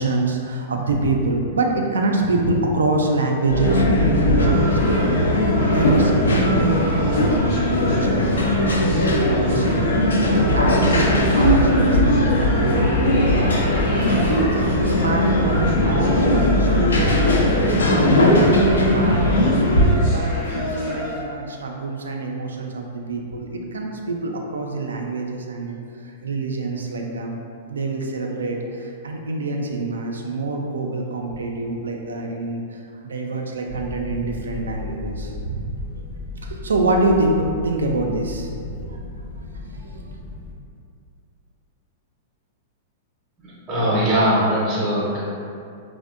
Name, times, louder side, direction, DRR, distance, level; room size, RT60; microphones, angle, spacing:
voice 1, 0.0-7.4 7.8-9.9 10.3-13.4 13.9-25.8 26.0-27.3 27.7-36.0 36.4-37.4 37.6-39.0 39.5-40.2, right 2 dB, 85° right, 1 dB, 0.3 m, -26 dB
sound 1, 3.5-19.9, left 1 dB, 85° left, 0.3 m, -18 dB
sound 2, 4.3-21.2, equal, 70° left, 0.9 m, -31 dB
sound 3, 33.7-40.5, left 3 dB, 45° left, 0.6 m, -35 dB
voice 2, 43.4-45.2, equal, 25° right, -8 dB, 0.6 m, -21 dB
2.6 x 2.1 x 2.4 m, 2.4 s
hypercardioid pair, 110°, 0 cm